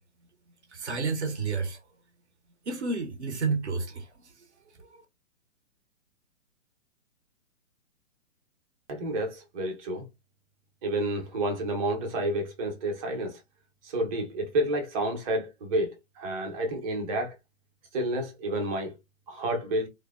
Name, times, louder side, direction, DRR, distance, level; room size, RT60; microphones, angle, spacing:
voice 1, 0.7-1.8 2.7-4.0, right 4 dB, 60° right, 0.8 m, -30 dB
voice 2, 8.9-10.1 10.8-13.4 13.8-17.3 17.9-18.9 19.3-19.9, right 1 dB, 30° right, 0.7 m, -30 dB
3.2 x 2.1 x 2.3 m
figure-of-eight pair, 120°, 39 cm